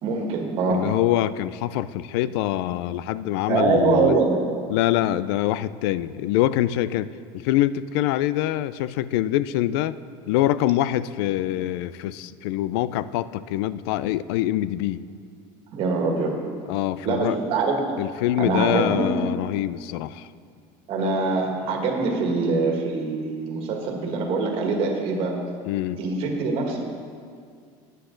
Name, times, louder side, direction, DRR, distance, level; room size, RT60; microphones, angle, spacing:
voice 1, 0.0-0.9 3.5-4.4 15.7-16.4 17.0-17.7 18.4-19.1 20.9-25.4 26.0-26.8, right 3 dB, 45° right, 1 dB, 1.7 m, -23 dB
voice 2, 0.7-4.1 4.7-10.0 10.3-15.0 16.7-17.4 18.0-20.3 25.6-26.0, left 13 dB, 85° left, 16 dB, 0.4 m, -24 dB
13.0 x 9.3 x 3.9 m, 2.2 s
cardioid pair, 160°, 13 cm